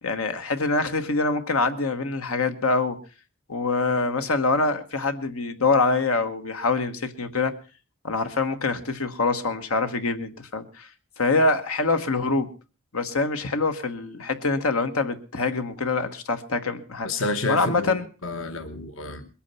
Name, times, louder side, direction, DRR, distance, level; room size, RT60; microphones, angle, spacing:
voice 1, 0.0-3.0 3.5-7.5 8.0-10.9 11.2-12.5 12.9-17.1 17.5-18.1, left 3 dB, 85° left, 1.4 m, -25 dB
voice 2, 17.0-19.3, left 2 dB, 65° left, 1.1 m, -30 dB
21.5 x 8.8 x 5.5 m
head